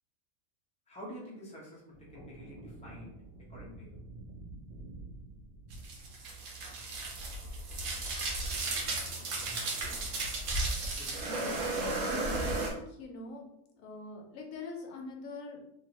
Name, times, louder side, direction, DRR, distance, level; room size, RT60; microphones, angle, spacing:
voice 1, 0.9-3.2 3.5-4.0 11.0-11.4, equal, 5° left, -5 dB, 0.7 m, -48 dB
sound 1, 1.9-7.5, right 2 dB, 70° right, 1.2 m, -49 dB
sound 2, 5.7-12.7, right 2 dB, 85° right, 1.2 m, -34 dB
voice 2, 11.2-11.6 12.0-13.4 13.7-15.7, left 3 dB, 70° left, 1 dB, 1.0 m, -44 dB
2.9 x 2.6 x 2.8 m, 0.77 s
omnidirectional pair, 1.5 m